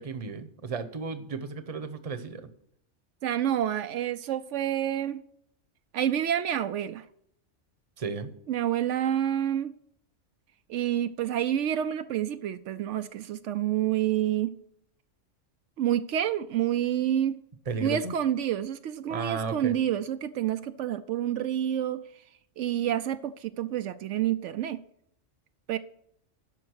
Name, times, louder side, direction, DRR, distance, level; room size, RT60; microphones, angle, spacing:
voice 1, 0.0-2.4 8.0-8.3 17.7-18.1 19.1-19.7, right 4 dB, 30° right, 0.9 m, -34 dB
voice 2, 3.2-5.2 5.9-7.0 8.5-9.7 10.7-14.5 15.8-17.4 17.8-22.0 22.6-24.8 25.7-25.8, right 11 dB, 80° right, 0.9 m, -28 dB
12.0 x 5.4 x 6.4 m
omnidirectional pair, 1.2 m